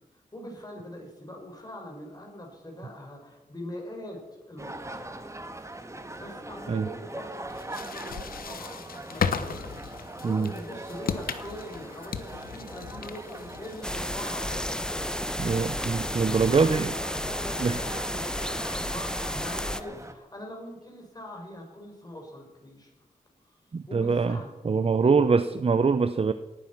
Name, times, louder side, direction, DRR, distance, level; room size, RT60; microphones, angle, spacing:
voice 1, 0.1-5.3 6.2-15.1 15.5-15.8 16.5-22.9 23.4-23.6 23.9-24.5 25.0-25.6, left 1 dB, 25° left, 1 dB, 5.8 m, -43 dB
sound 1, 4.6-20.1, right 1 dB, 20° right, 1.6 m, -41 dB
sound 2, 7.5-14.8, left 7 dB, 90° left, 1.0 m, -36 dB
sound 3, 13.8-19.8, left 1 dB, 5° left, 0.8 m, -32 dB
voice 2, 15.4-16.9 17.6-17.8 23.7-24.4 24.6-26.3, right 5 dB, 40° right, 11 dB, 0.7 m, -23 dB
18.0 x 9.6 x 6.0 m, 1.1 s
cardioid pair, 65°, 15 cm